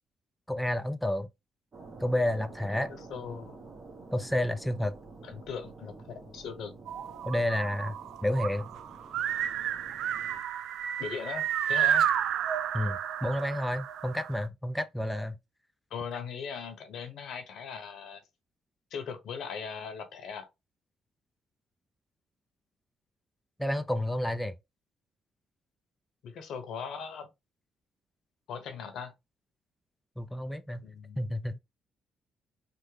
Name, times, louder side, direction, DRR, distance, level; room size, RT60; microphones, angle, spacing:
voice 1, 0.5-1.3 2.0-2.9 4.1-5.0 7.3-7.9 8.2-8.7 12.7-15.4 23.6-24.6 30.2-30.8 31.2-31.6, left 1 dB, 5° left, 0.3 m, -30 dB
sound 1, 1.7-10.4, right 3 dB, 40° right, 1.2 m, -49 dB
voice 2, 2.9-3.6 5.2-6.7 11.0-12.1 15.9-18.2 18.9-20.5 26.2-27.3 28.5-29.1 30.8-31.3, left 6 dB, 75° left, 0.9 m, -39 dB
sound 2, 6.9-14.4, right 10 dB, 80° right, 0.3 m, -31 dB
3.5 x 2.1 x 3.2 m
cardioid pair, 90°, 0 cm